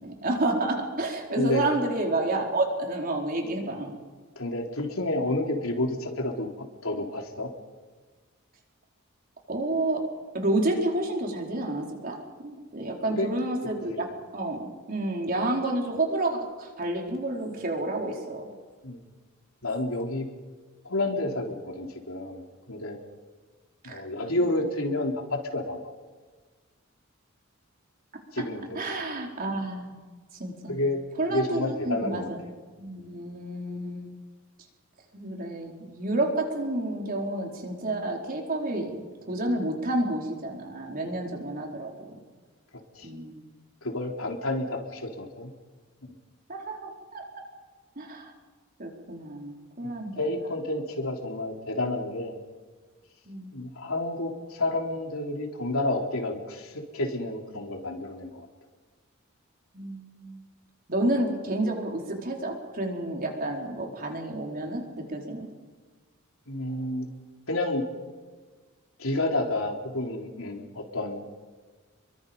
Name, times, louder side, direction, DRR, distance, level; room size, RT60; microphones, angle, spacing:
voice 1, 0.0-3.9 9.5-10.0 10.3-14.1 14.3-18.5 23.9-24.0 28.7-30.0 30.4-30.7 31.2-32.4 32.8-34.2 35.1-39.0 39.3-42.2 43.0-43.4 46.5-47.2 48.0-48.3 48.8-50.2 53.3-53.5 59.7-60.4 60.9-65.5, right 2 dB, 45° right, 1 dB, 4.6 m, -30 dB
voice 2, 1.4-1.7 4.4-6.5 6.8-7.5 13.1-13.3 13.9-14.1 18.8-19.0 19.6-20.3 20.8-23.0 23.8-25.9 28.3-28.8 30.7-31.0 31.3-32.3 43.0-43.1 43.8-45.5 46.0-46.1 49.8-52.4 53.5-58.5 66.5-67.1 67.5-67.8 69.0-71.2, left 2 dB, 85° left, 1 dB, 3.6 m, -30 dB
28.5 x 23.0 x 5.4 m, 1.4 s
head